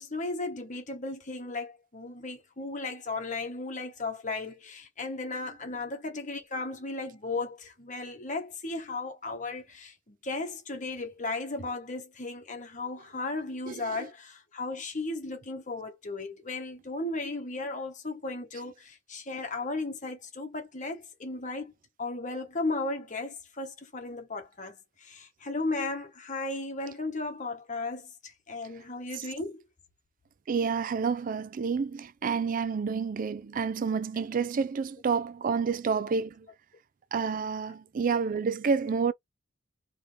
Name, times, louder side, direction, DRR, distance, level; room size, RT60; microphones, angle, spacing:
voice 1, 0.0-21.7 22.0-29.6, left 3 dB, 40° left, 1.2 m, -35 dB
voice 2, 13.7-14.1 30.5-36.5 37.1-39.1, right 5 dB, 45° right, 0.4 m, -29 dB
3.6 x 3.2 x 3.5 m
head